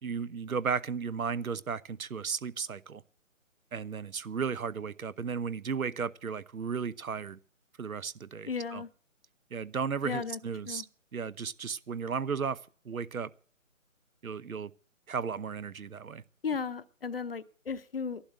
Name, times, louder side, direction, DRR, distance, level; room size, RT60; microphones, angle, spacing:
voice 1, 0.0-3.0 3.7-7.4 7.8-8.8 9.5-10.9 11.1-12.6 12.8-13.3 14.2-14.7 15.1-16.2, right 6 dB, 85° right, 1.0 m, -34 dB
voice 2, 8.4-8.9 10.0-10.4 10.7-10.8 16.4-18.2, left 5 dB, 45° left, 0.8 m, -35 dB
13.5 x 11.5 x 8.1 m
figure-of-eight pair, 160°, 41 cm